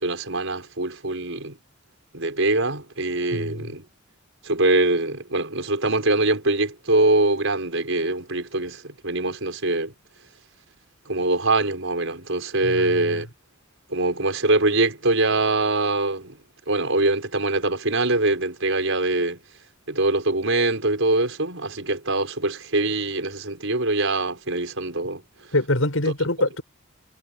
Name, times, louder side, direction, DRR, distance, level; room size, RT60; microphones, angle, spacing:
voice 1, 0.0-1.6 2.1-3.8 4.4-9.9 11.1-13.3 13.9-16.4 16.7-19.4 19.9-25.2, right 2 dB, 75° right, 5.0 m, -23 dB
voice 2, 3.3-3.7 12.6-13.2 25.5-26.6, left 1 dB, 80° left, 6.4 m, -25 dB
head